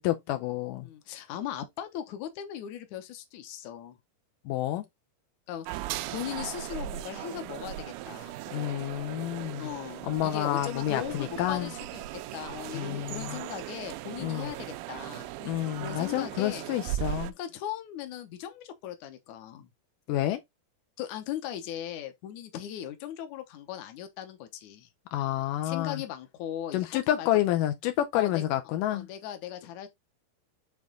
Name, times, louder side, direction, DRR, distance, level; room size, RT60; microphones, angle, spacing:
voice 1, 0.0-0.9 4.5-4.8 8.5-9.7 10.0-11.7 12.7-13.4 14.2-14.5 15.4-17.3 20.1-20.4 25.1-26.0 26.7-29.1, left 13 dB, 90° left, 1.9 m, -29 dB
voice 2, 0.8-4.0 5.5-8.4 9.6-15.3 15.8-16.7 17.3-19.7 21.0-24.9 25.6-27.3 28.1-28.4 28.9-29.9, left 11 dB, 70° left, 1.8 m, -38 dB
sound 1, 5.7-17.3, right 13 dB, 80° right, 2.2 m, -38 dB
7.2 x 3.6 x 3.7 m
omnidirectional pair, 4.6 m